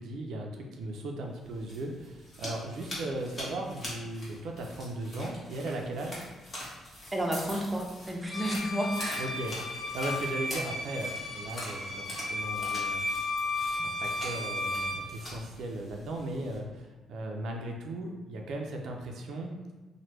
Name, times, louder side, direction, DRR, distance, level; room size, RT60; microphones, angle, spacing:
voice 1, 0.0-6.2 9.2-13.0 13.8-19.7, right 1 dB, 75° right, 1 dB, 0.3 m, -37 dB
sound 1, 1.4-16.6, left 1 dB, 35° left, 1.2 m, -44 dB
voice 2, 7.1-9.2, right 1 dB, 15° right, -1 dB, 0.5 m, -31 dB
Bowed string instrument, 8.3-15.1, left 2 dB, 70° left, 0.6 m, -34 dB
3.2 x 2.1 x 3.0 m, 1.2 s
cardioid pair, 90°, 0 cm